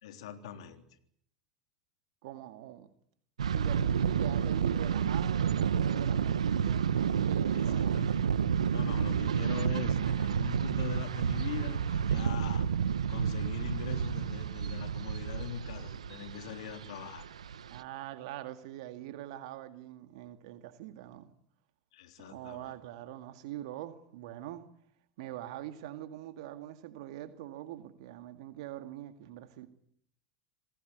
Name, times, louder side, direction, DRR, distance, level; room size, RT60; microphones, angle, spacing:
voice 1, 0.0-0.8 7.5-8.2 8.7-12.7 13.1-17.3 21.9-22.8, left 7 dB, 75° left, 3.5 m, -42 dB
voice 2, 2.2-2.9 3.5-8.1 12.1-12.5 17.7-21.3 22.2-24.7 25.2-29.7, right 13 dB, 70° right, 2.1 m, -44 dB
sound 1, 3.4-17.8, right 7 dB, 90° right, 1.1 m, -30 dB
27.5 x 18.5 x 9.4 m
hypercardioid pair, 90°, 3 cm